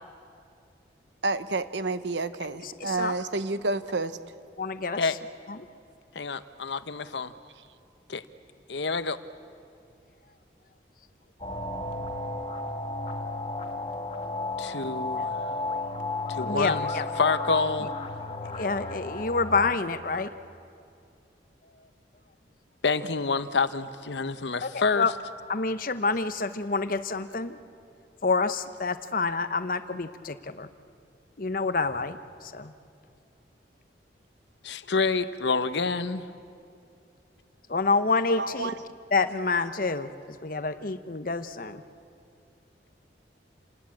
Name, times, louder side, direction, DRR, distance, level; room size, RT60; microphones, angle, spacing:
voice 1, 1.2-4.2 38.4-38.7, right 3 dB, 80° right, 12 dB, 1.0 m, -29 dB
voice 2, 2.6-3.1 4.6-5.2 5.5-5.7 16.4-17.0 18.5-20.3 24.6-25.1 25.5-27.6 28.2-30.7 31.4-32.7 37.7-38.7 39.1-41.8, left 4 dB, 50° left, 11 dB, 0.9 m, -28 dB
voice 3, 6.1-7.3 8.1-8.2 8.7-9.2 14.6-15.5 16.3-16.9 17.2-17.9 22.8-25.1 34.6-36.3, left 4 dB, 75° left, 13 dB, 0.9 m, -27 dB
sound 1, 11.4-19.7, left 2 dB, 30° left, 1.6 m, -33 dB
29.0 x 19.0 x 8.6 m, 2.5 s
head